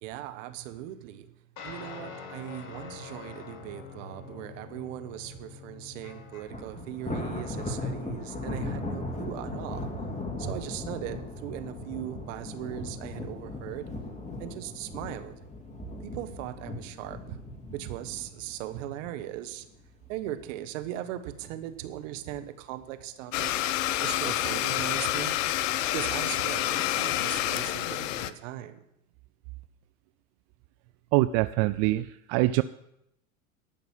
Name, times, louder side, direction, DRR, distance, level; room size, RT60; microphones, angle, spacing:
voice 1, 0.0-1.3 1.6-9.9 10.4-13.9 14.4-15.4 16.0-17.4 17.7-19.7 20.1-23.5 24.0-25.4 25.9-28.8, right 13 dB, 65° right, 10 dB, 1.2 m, -39 dB
sound 1, 1.6-6.7, left 6 dB, 50° left, 3.4 m, -45 dB
Thunder, 6.5-19.8 20.1-20.4 20.8-20.9 21.8-22.4, left 2 dB, 15° left, 2.2 m, -37 dB
Domestic sounds home sounds, 23.3-28.3, left 13 dB, 70° left, 0.8 m, -28 dB
voice 2, 31.1-32.6, right 18 dB, 50° right, 14 dB, 0.4 m, -24 dB
12.5 x 6.0 x 7.3 m, 0.80 s
hypercardioid pair, 95°, 40 cm